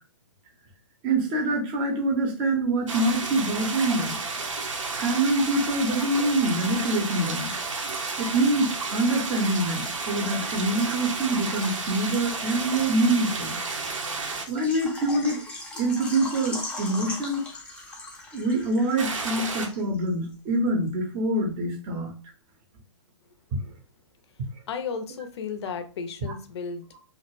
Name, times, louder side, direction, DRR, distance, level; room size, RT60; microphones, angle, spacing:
voice 1, 1.0-4.2 4.9-7.5 8.2-13.6 14.5-15.4 15.8-17.4 18.3-22.1 23.5-23.6 26.3-26.4 26.9-27.0, right 2 dB, 30° right, 3 dB, 0.7 m, -25 dB
sound 1, 2.9-14.4 19.0-19.7, right 4 dB, 75° right, 0.6 m, -32 dB
Water / Liquid, 14.5-20.1 20.3-20.4 20.9-21.0, left 1 dB, 5° left, 0.5 m, -38 dB
voice 2, 24.7-26.8, left 5 dB, 55° left, 8 dB, 0.5 m, -33 dB
2.3 x 2.1 x 3.1 m, 0.34 s
figure-of-eight pair, 120°, 16 cm